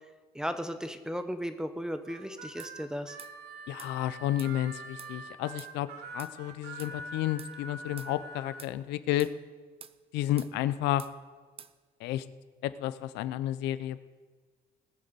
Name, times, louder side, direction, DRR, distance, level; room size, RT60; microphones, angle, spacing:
voice 1, 0.3-3.2, equal, 5° right, 9 dB, 0.9 m, -35 dB
Harmonica, 2.0-8.6, right 2 dB, 75° right, 1.6 m, -44 dB
sound 1, 2.6-2.7 3.2-3.3 3.8-3.9 4.4-4.5 5.0-5.1 5.6-5.7 6.2-6.3 6.8-6.9 7.4-7.5 8.0-8.1 8.6-8.8 9.2-9.4 9.8-10.0 10.4-10.5 11.0-11.1 11.6-11.7, right 7 dB, 35° right, 0.6 m, -48 dB
voice 2, 3.7-5.9 6.1-9.3 10.1-11.0 12.0-12.2 12.6-14.0, left 13 dB, 90° left, 14 dB, 0.6 m, -31 dB
19.5 x 6.6 x 6.9 m, 1.4 s
cardioid pair, 110°, 17 cm